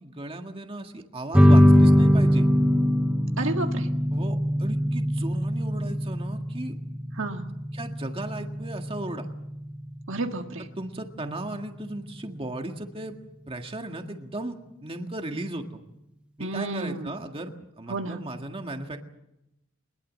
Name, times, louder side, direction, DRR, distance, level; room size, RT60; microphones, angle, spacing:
voice 1, 0.0-2.5 4.1-6.7 7.7-9.3 10.8-13.2 13.5-14.6 14.8-15.8 16.4-19.0, right 1 dB, 25° right, 4 dB, 1.8 m, -36 dB
sound 1, 1.3-12.3, equal, 5° right, 1.1 m, -22 dB
voice 2, 3.4-3.9 7.2-7.5 10.1-10.7 16.4-17.2 17.9-18.2, right 2 dB, 65° right, 4 dB, 1.8 m, -31 dB
22.5 x 21.5 x 7.5 m, 0.88 s
head